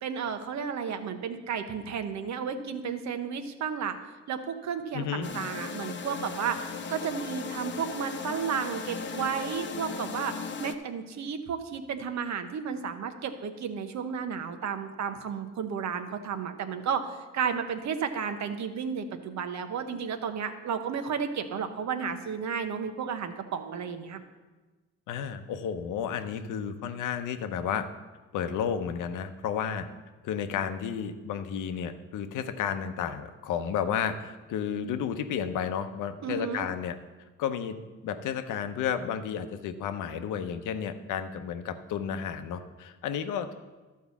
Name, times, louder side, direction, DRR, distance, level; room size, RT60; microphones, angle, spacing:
voice 1, 0.0-4.0 4.3-10.3 10.6-24.2 36.2-36.7, right 7 dB, 65° right, 8 dB, 1.0 m, -33 dB
voice 2, 4.9-5.3 25.1-27.9 28.3-29.9 30.2-37.0 37.4-43.5, left 8 dB, 85° left, 9 dB, 0.8 m, -32 dB
sound 1, 5.2-10.7, left 5 dB, 40° left, 0.8 m, -37 dB
12.5 x 4.7 x 7.1 m, 1.2 s
cardioid pair, 90°, 30 cm